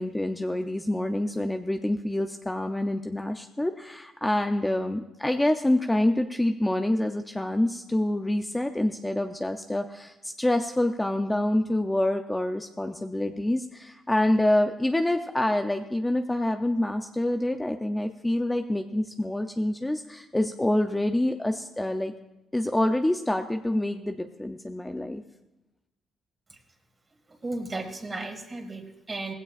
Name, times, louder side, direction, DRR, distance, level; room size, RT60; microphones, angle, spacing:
voice 1, 0.0-22.1 22.5-25.2, left 1 dB, 10° left, 6 dB, 0.6 m, -26 dB
voice 2, 27.3-29.3, right 2 dB, 25° right, 5 dB, 1.9 m, -35 dB
18.0 x 16.0 x 2.5 m, 0.94 s
cardioid pair, 90°, 0 cm